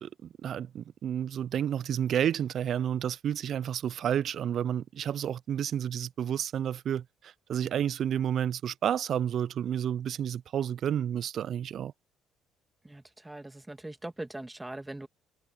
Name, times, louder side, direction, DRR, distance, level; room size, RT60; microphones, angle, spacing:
voice 1, 0.0-11.9, right 9 dB, 60° right, 0.4 m, -30 dB
voice 2, 12.8-15.1, right 1 dB, 15° right, 2.2 m, -41 dB
hypercardioid pair, 60°, 0 cm